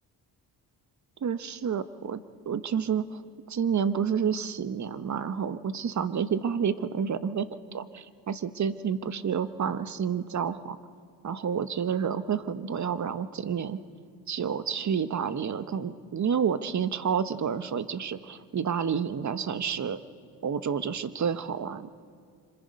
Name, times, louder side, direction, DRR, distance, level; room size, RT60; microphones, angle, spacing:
voice 1, 1.2-2.2 2.5-3.2 3.5-10.8 11.2-13.8 14.3-20.0 20.4-21.9, right 7 dB, 45° right, 12 dB, 1.1 m, -29 dB
26.0 x 25.5 x 5.3 m, 2.2 s
cardioid pair, 75°, 41 cm